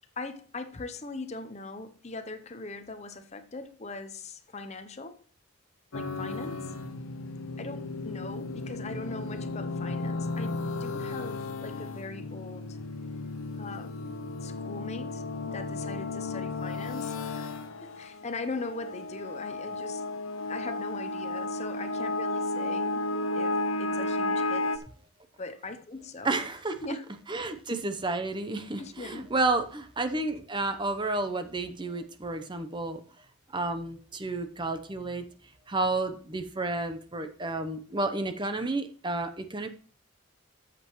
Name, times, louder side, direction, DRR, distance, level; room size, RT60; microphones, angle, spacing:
voice 1, 0.2-5.2 5.9-6.7 7.6-12.8 13.6-14.1 14.4-20.1 20.5-23.0 23.3-24.8 25.4-26.4 26.8-27.0 28.8-29.3, left 3 dB, 30° left, 0.7 m, -40 dB
sound 1, 5.9-24.8, left 2 dB, 80° left, 0.8 m, -33 dB
voice 2, 26.2-26.8 27.3-33.0 33.5-35.2 35.7-39.7, right 2 dB, 20° right, 0.7 m, -31 dB
13.5 x 7.6 x 3.1 m
head